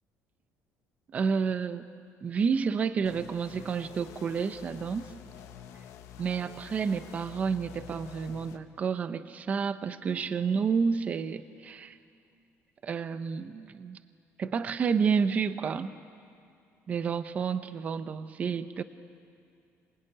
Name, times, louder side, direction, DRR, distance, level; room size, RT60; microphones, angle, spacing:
voice 1, 1.1-1.9 2.2-5.1 6.2-12.0 12.8-14.0 14.4-15.9 16.9-18.8, right 6 dB, 25° right, 11 dB, 0.7 m, -30 dB
sound 1, 3.0-8.6, left 9 dB, 65° left, 1.4 m, -48 dB
25.5 x 20.5 x 9.8 m, 2.4 s
cardioid pair, 180°, 5 cm